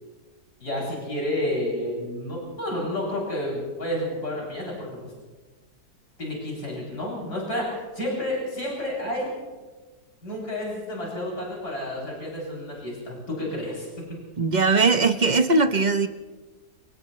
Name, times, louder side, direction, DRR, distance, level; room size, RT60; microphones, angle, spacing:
voice 1, 0.6-4.9 6.2-9.3 10.2-13.9, left 1 dB, 70° left, -4 dB, 8.1 m, -30 dB
voice 2, 14.4-16.1, right 3 dB, 35° right, 8 dB, 0.8 m, -20 dB
29.5 x 27.5 x 3.2 m, 1.3 s
omnidirectional pair, 1.7 m